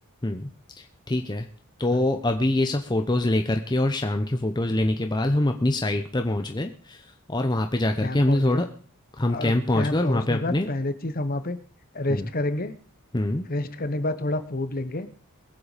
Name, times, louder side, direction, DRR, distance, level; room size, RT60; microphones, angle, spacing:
voice 1, 1.1-1.5 1.8-7.0 7.3-8.7 9.2-10.7 12.1-12.3 13.1-13.5, left 1 dB, 20° left, 5 dB, 0.8 m, -24 dB
voice 2, 8.0-8.7 9.3-11.6 11.9-12.7 13.5-15.1, left 2 dB, 40° left, 11 dB, 1.1 m, -29 dB
21.5 x 7.7 x 5.0 m, 0.42 s
head